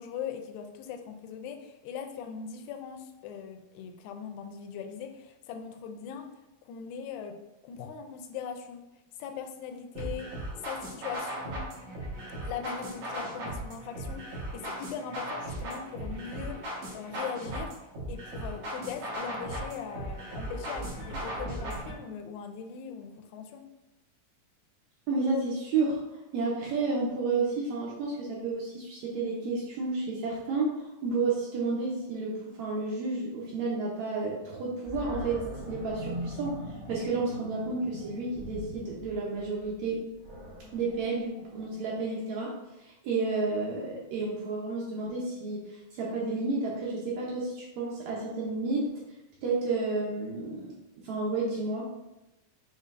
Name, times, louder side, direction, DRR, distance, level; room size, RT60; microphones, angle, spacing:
voice 1, 0.0-6.3 6.7-7.4 7.6-8.8 9.2-10.3 10.6-11.7 12.4-17.7 18.1-23.7, left 7 dB, 85° left, 5 dB, 2.3 m, -40 dB
sound 1, 9.9-21.9, right 1 dB, 55° right, 1.9 m, -37 dB
voice 2, 25.1-26.0 26.3-40.0 40.7-42.5 42.8-48.9 49.4-50.8 51.0-51.9, right 3 dB, 85° right, -4 dB, 1.5 m, -31 dB
Animal, 34.8-42.0, equal, 40° right, 1.4 m, -41 dB
6.5 x 3.3 x 2.5 m, 0.94 s
omnidirectional pair, 4.1 m